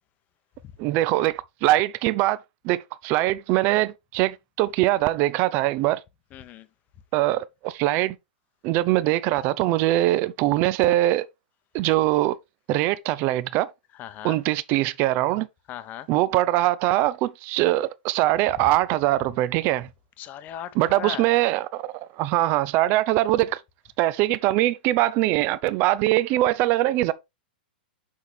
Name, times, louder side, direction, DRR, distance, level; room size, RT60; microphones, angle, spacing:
voice 1, 0.8-2.4 2.6-6.0 7.1-8.2 8.6-11.2 11.7-12.4 12.7-13.7 14.2-15.5 16.1-19.9 20.8-23.6 24.0-27.1, right 16 dB, 40° right, 0.4 m, -22 dB
voice 2, 6.3-6.7 14.0-14.4 15.7-16.1 18.6-18.7 20.2-21.3, left 11 dB, 30° left, 0.8 m, -37 dB
6.2 x 5.7 x 3.3 m
hypercardioid pair, 135°, 6 cm